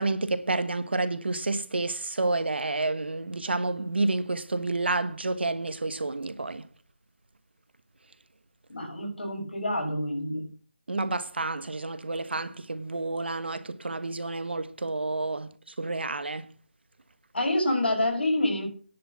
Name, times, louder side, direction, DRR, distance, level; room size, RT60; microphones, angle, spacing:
voice 1, 0.0-6.6 10.9-15.5 15.8-16.5, right 2 dB, 85° right, 1.3 m, -29 dB
voice 2, 8.7-10.4 17.3-18.7, left 1 dB, 80° left, 6.0 m, -27 dB
10.5 x 6.0 x 8.4 m
figure-of-eight pair, 170°, 6 cm